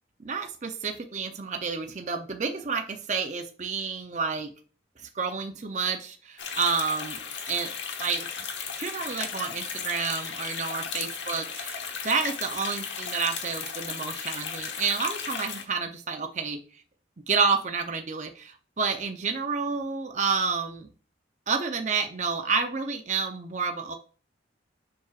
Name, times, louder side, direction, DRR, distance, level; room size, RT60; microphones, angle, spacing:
voice 1, 0.2-4.5 5.1-7.2 7.5-7.7 8.0-8.3 8.8-16.6 17.3-20.9 21.5-24.0, right 5 dB, 40° right, 5 dB, 0.6 m, -29 dB
sound 1, 6.4-15.6, left 6 dB, 70° left, 1.1 m, -35 dB
7.2 x 6.0 x 2.4 m, 0.39 s
head